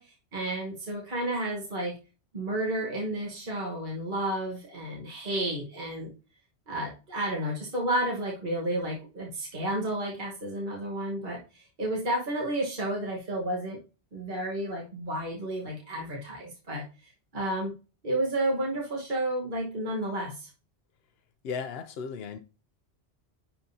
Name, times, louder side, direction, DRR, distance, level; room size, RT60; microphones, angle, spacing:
voice 1, 0.0-2.0 2.3-6.1 6.7-13.8 14.1-17.7 18.0-20.5, right 1 dB, 45° right, 1.5 m, -31 dB
voice 2, 21.4-22.4, left 6 dB, 65° left, 0.8 m, -35 dB
10.0 x 3.7 x 2.7 m
omnidirectional pair, 1.1 m